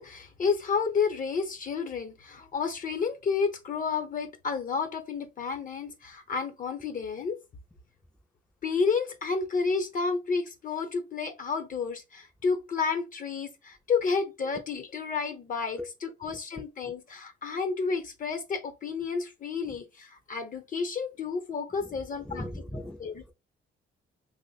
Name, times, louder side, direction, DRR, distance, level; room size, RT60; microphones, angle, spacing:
voice 1, 0.0-7.4 8.6-22.4 23.0-23.1, left 5 dB, 45° left, 0.9 m, -31 dB
voice 2, 21.7-23.3, left 1 dB, 5° left, 0.5 m, -40 dB
3.0 x 2.1 x 4.1 m
cardioid pair, 90°, 20 cm